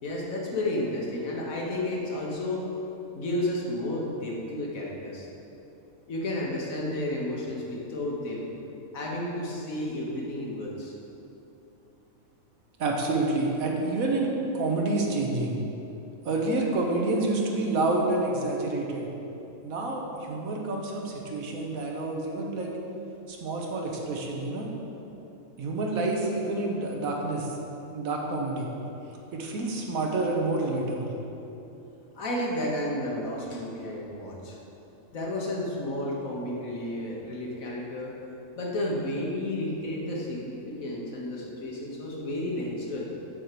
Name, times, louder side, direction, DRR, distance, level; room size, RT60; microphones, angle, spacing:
voice 1, 0.0-2.7 3.1-5.3 6.1-8.5 8.9-10.9 32.1-34.6 35.1-38.1 38.6-43.1, left 1 dB, 80° left, -2 dB, 1.7 m, -32 dB
voice 2, 12.8-15.6 16.2-19.1 19.6-22.7 23.3-24.7 25.6-27.6 27.9-28.7 29.3-31.1, right 2 dB, 85° right, 0 dB, 1.4 m, -28 dB
7.1 x 4.4 x 6.7 m, 3.0 s
omnidirectional pair, 1.4 m